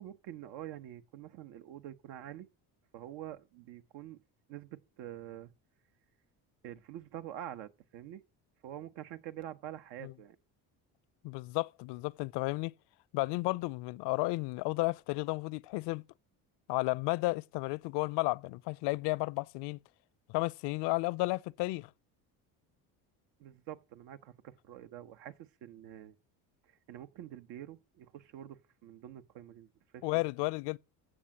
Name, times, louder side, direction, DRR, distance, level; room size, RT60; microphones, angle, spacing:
voice 1, 0.0-2.5 2.9-4.2 4.5-5.5 6.6-8.2 8.6-10.4 23.4-26.1 26.9-30.2, right 11 dB, 85° right, 1.4 m, -46 dB
voice 2, 11.2-12.7 13.1-16.0 16.7-19.8 20.3-21.9 30.0-30.8, left 22 dB, 80° left, 0.7 m, -33 dB
16.0 x 6.4 x 8.8 m
cardioid pair, 100°, 41 cm